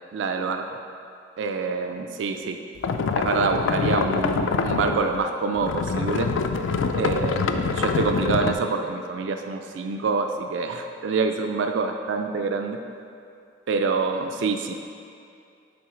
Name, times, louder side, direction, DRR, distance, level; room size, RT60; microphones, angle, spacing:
voice 1, 0.1-0.8 1.4-2.6 3.1-6.3 7.0-12.8 13.7-14.8, right 4 dB, 65° right, 5 dB, 0.3 m, -26 dB
sound 1, 2.8-5.2 5.6-8.5, left 4 dB, 75° left, 0.3 m, -25 dB
6.1 x 3.7 x 4.8 m, 2.5 s
head